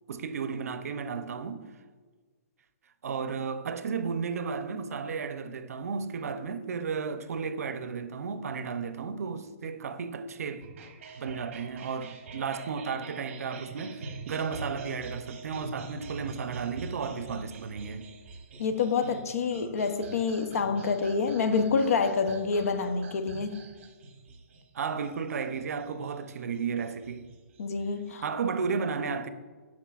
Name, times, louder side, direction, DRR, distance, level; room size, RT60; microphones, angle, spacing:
voice 1, 0.1-1.7 3.0-10.7 11.2-18.1 23.3-23.5 24.7-27.2 28.2-29.3, right 5 dB, 80° right, 0.5 m, -33 dB
sound 1, 10.6-28.3, right 4 dB, 50° right, 0.9 m, -45 dB
voice 2, 18.6-23.6 27.6-28.2, left 5 dB, 75° left, 0.6 m, -27 dB
7.3 x 6.2 x 2.4 m
hypercardioid pair, 155°, 8 cm